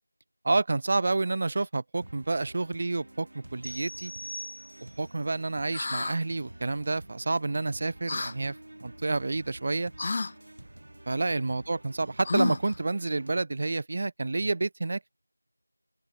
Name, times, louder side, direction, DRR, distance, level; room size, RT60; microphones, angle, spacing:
voice 1, 0.4-4.1 4.8-8.6 8.8-9.9 11.1-15.1, right 3 dB, 25° right, 0.6 m, -29 dB
sound 1, 2.0-13.4, right 1 dB, 45° right, 3.7 m, -49 dB
sound 2, 3.6-5.2, equal, 85° left, 7.1 m, -41 dB
sound 3, 5.7-6.2 8.1-8.3 10.0-10.3 12.2-12.8, left 3 dB, 20° left, 0.7 m, -30 dB
open air
figure-of-eight pair, 170°, 0 cm